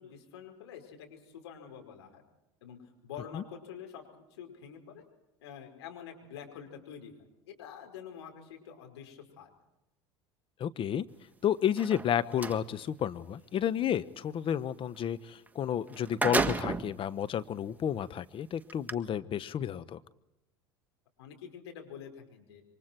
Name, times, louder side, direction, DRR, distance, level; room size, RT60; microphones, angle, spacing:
voice 1, 0.0-2.2 2.6-4.0 4.3-5.0 5.4-7.2 7.5-9.5 21.2-22.6, left 8 dB, 75° left, 2 dB, 5.3 m, -47 dB
voice 2, 10.6-11.1 11.4-20.0, left 9 dB, 40° left, 13 dB, 1.1 m, -31 dB
sound 1, 11.7-12.6 15.5-15.6 15.9-17.0 17.7-17.8 18.7-18.9, right 3 dB, 10° right, 1.7 m, -31 dB
27.5 x 24.5 x 4.6 m, 0.91 s
hypercardioid pair, 75°, 14 cm